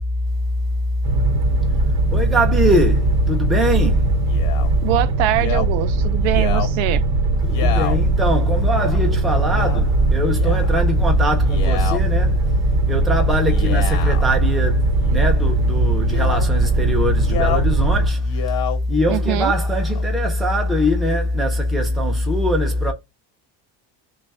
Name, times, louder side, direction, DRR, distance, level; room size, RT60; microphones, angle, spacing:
sound 1, 1.0-18.1, right 3 dB, 35° right, 0.8 m, -20 dB
voice 1, 2.1-4.1 7.4-12.5 12.9-18.2 18.9-22.9, left 1 dB, ahead, 0.4 m, -20 dB
Male speech man speaking, 4.3-4.7 5.3-5.7 6.2-6.7 7.4-8.0 8.7-9.0 9.5-9.8 10.3-10.9 11.4-12.0 13.4-14.3 15.0-15.4 16.0-16.5 17.2-17.7 18.1-18.8 19.5-20.0, left 10 dB, 75° left, 1.0 m, -29 dB
voice 2, 4.8-7.0 19.1-19.5, right 16 dB, 75° right, 0.5 m, -23 dB
3.1 x 2.3 x 4.1 m
cardioid pair, 150°, 46 cm